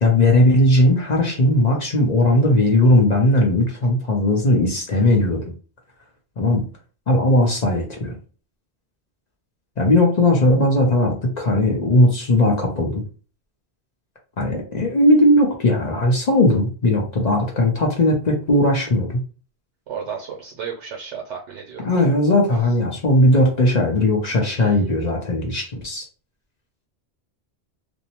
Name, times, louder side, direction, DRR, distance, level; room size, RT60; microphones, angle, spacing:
voice 1, 0.0-5.5 6.4-6.6 7.1-8.2 9.8-13.0 14.4-19.2 21.8-26.1, left 1 dB, 45° left, 0 dB, 0.6 m, -18 dB
voice 2, 19.9-21.9 24.5-24.7, right 7 dB, 85° right, -1 dB, 0.9 m, -33 dB
2.6 x 2.0 x 2.8 m, 0.37 s
omnidirectional pair, 1.2 m